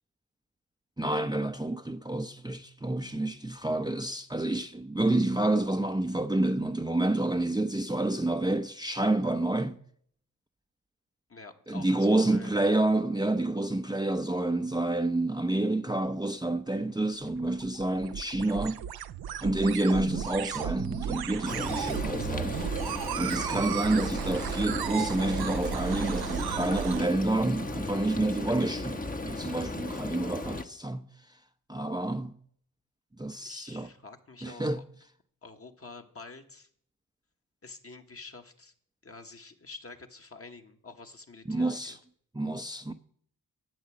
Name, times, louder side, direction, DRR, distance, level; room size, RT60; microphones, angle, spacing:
voice 1, 1.0-9.8 11.7-18.8 19.4-31.0 31.7-32.3 33.2-33.9 34.4-34.8 41.5-42.0 42.3-42.9, right 2 dB, 10° right, 0.7 m, -29 dB
voice 2, 11.3-12.5 21.1-21.4 33.4-34.8 35.4-36.7 37.6-38.7 39.0-42.0, left 3 dB, 40° left, 1.5 m, -48 dB
sound 1, 17.3-27.1, right 9 dB, 85° right, 0.6 m, -34 dB
Frying (food), 21.5-30.6, left 2 dB, 25° left, 1.0 m, -36 dB
10.5 x 8.2 x 7.5 m
cardioid pair, 55°, 37 cm